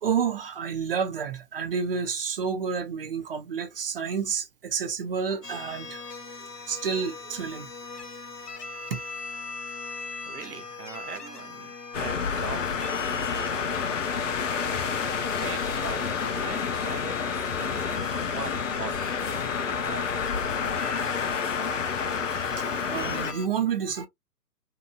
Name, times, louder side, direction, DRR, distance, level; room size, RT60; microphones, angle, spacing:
voice 1, 0.0-6.0 6.7-7.7 8.9-9.0 22.6-24.1, right 6 dB, 35° right, 0.7 m, -29 dB
sound 1, 5.4-23.5, left 4 dB, 80° left, 1.0 m, -41 dB
voice 2, 10.3-14.2 15.3-20.1, right 6 dB, 70° right, 0.7 m, -41 dB
sound 2, 11.9-23.3, left 6 dB, 50° left, 0.6 m, -29 dB
2.8 x 2.5 x 2.3 m
figure-of-eight pair, 130°, 48 cm